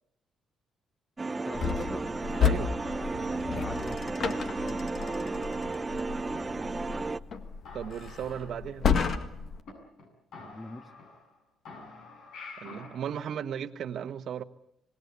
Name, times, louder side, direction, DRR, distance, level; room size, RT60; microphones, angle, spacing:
sound 1, 1.2-7.2, right 3 dB, 25° right, 0.8 m, -33 dB
voice 1, 1.4-2.0 3.4-4.2 4.5-5.4 10.4-10.9, left 2 dB, 20° left, 9 dB, 1.8 m, -42 dB
sound 2, 1.5-9.6, left 7 dB, 55° left, 1.9 m, -32 dB
sound 3, 2.3-4.3 4.7-4.8 5.0-6.0 6.3-7.0 7.3-7.4 7.7-9.7 10.0-10.1 10.3-11.4 11.7-13.0, left 3 dB, 75° left, 7.3 m, -49 dB
voice 2, 2.4-2.7 7.7-8.9 12.6-14.4, right 8 dB, 65° right, 10 dB, 1.3 m, -35 dB
26.0 x 19.0 x 8.3 m, 0.76 s
cardioid pair, 90°, 0 cm